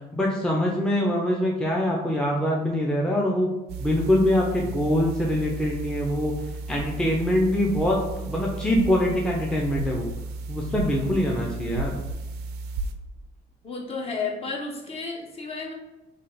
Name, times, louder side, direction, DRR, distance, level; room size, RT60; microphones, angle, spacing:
voice 1, 0.1-3.5 3.8-6.3 6.7-10.1 10.5-11.9, left 1 dB, 5° left, -2 dB, 0.5 m, -24 dB
sound 1, 3.7-12.9, right 3 dB, 80° right, 0.4 m, -34 dB
voice 2, 11.6-11.9 13.6-15.7, left 4 dB, 35° left, 0 dB, 0.8 m, -32 dB
3.3 x 2.3 x 3.9 m, 1.0 s
cardioid pair, 110°, 17 cm